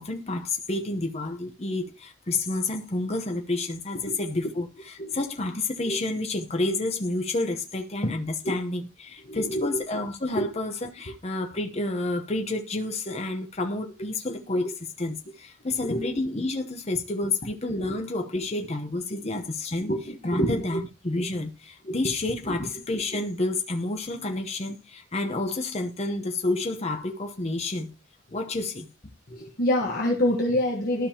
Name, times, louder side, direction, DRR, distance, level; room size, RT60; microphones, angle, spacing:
voice 1, 0.0-27.9 28.3-28.9, left 2 dB, 30° left, 0.8 m, -30 dB
voice 2, 9.3-9.6 10.4-10.5 15.9-16.0 19.9-20.6 21.9-22.0 29.6-31.1, left 1 dB, 50° left, 1.3 m, -25 dB
12.5 x 5.3 x 2.9 m
head